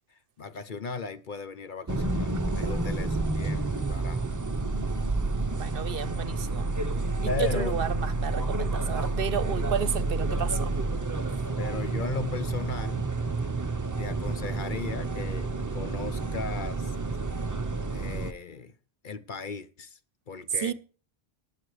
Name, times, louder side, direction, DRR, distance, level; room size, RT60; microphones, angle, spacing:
voice 1, 0.1-4.2 7.2-7.8 11.6-13.1 14.0-16.9 17.9-18.7 19.0-20.0 20.3-20.7, left 5 dB, 50° left, 0.9 m, -37 dB
sound 1, 1.9-18.3, right 3 dB, 20° right, 0.6 m, -29 dB
voice 2, 5.5-6.7 7.2-10.7 20.6-20.7, right 7 dB, 60° right, 0.9 m, -32 dB
20.0 x 8.3 x 3.2 m
omnidirectional pair, 1.1 m